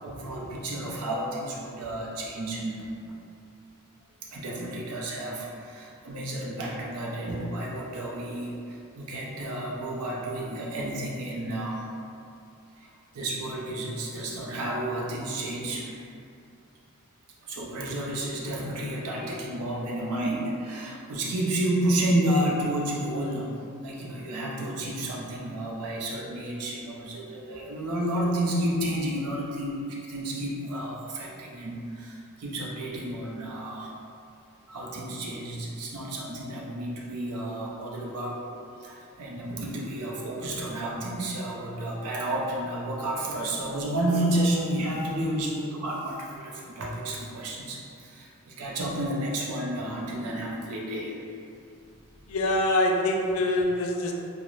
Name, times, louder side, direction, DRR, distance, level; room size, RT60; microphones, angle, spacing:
voice 1, 0.0-3.2 4.3-11.9 12.8-12.9 13.1-16.0 17.4-23.6 23.8-33.9 34.7-38.5 38.8-51.2, right 1 dB, 90° right, -3 dB, 0.5 m, -31 dB
voice 2, 52.3-54.1, left 1 dB, 60° left, 1 dB, 0.3 m, -24 dB
2.4 x 2.1 x 3.0 m, 2.5 s
head